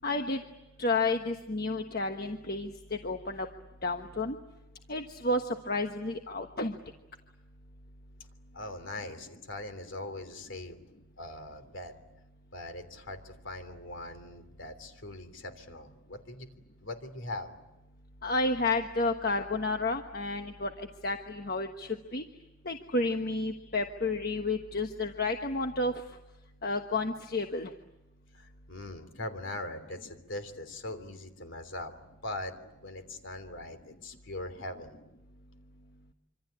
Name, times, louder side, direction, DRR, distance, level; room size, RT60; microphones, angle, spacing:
voice 1, 0.0-0.4 0.8-3.5 3.8-4.4 4.9-6.7 18.2-22.2 22.6-25.9 26.6-27.7, left 2 dB, 45° left, 5 dB, 1.3 m, -31 dB
voice 2, 8.5-10.8 11.2-11.9 12.5-16.5 16.8-17.6 28.3-31.9 32.2-35.0, left 2 dB, 60° left, 8 dB, 3.3 m, -41 dB
26.5 x 26.0 x 8.7 m, 0.97 s
head